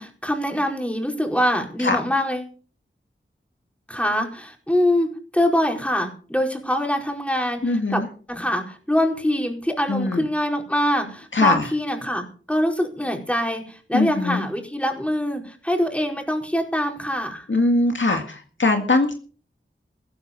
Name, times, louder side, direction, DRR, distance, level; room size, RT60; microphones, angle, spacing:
voice 1, 0.0-2.4 3.9-8.0 8.3-17.5, equal, 5° left, 2 dB, 4.7 m, -24 dB
voice 2, 7.6-8.0 9.9-10.2 11.3-11.7 13.9-14.4 17.5-19.1, left 2 dB, 70° left, 4 dB, 2.0 m, -21 dB
15.0 x 14.0 x 5.3 m, 0.41 s
wide cardioid pair, 60°, 20 cm